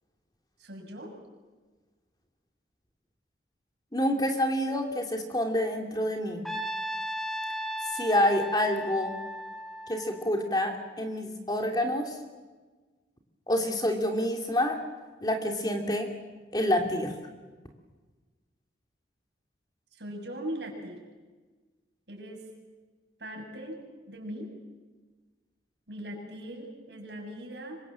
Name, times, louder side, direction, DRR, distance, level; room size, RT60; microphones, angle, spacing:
voice 1, 0.6-1.2 19.9-21.0 22.1-22.4 23.2-23.8 24.1-24.5 25.9-27.8, equal, 70° right, 1 dB, 7.0 m, -40 dB
voice 2, 3.9-6.4 7.9-9.2 9.9-12.2 13.5-14.8 15.2-16.1 16.5-17.1, left 1 dB, 20° left, 3 dB, 2.7 m, -27 dB
Trumpet, 6.4-10.7, equal, ahead, 1.9 m, -36 dB
26.5 x 24.0 x 7.6 m, 1.3 s
head